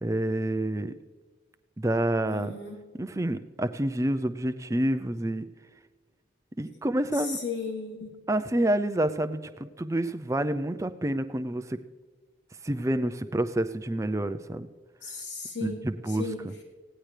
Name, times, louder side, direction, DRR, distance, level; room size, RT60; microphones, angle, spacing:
voice 1, 0.0-0.9 1.8-2.5 2.9-5.5 6.6-7.4 8.3-11.8 12.6-14.7 15.6-16.5, right 1 dB, 15° right, 10 dB, 0.5 m, -28 dB
voice 2, 2.2-2.8 7.1-8.2 15.0-16.4, left 4 dB, 70° left, -1 dB, 3.1 m, -36 dB
19.0 x 16.5 x 3.3 m, 1.3 s
head